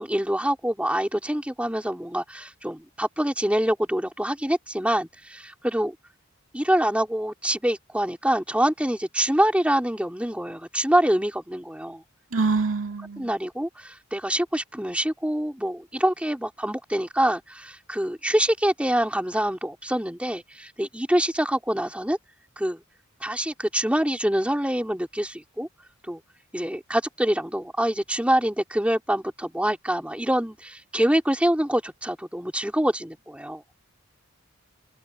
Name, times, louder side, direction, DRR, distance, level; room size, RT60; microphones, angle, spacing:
voice 1, 0.0-6.0 6.5-12.0 13.2-22.2 22.6-22.8 23.2-25.7 26.0-26.2 26.5-33.6, right 1 dB, 5° right, 3.9 m, -25 dB
voice 2, 12.3-13.3, right 4 dB, 65° right, 2.3 m, -25 dB
head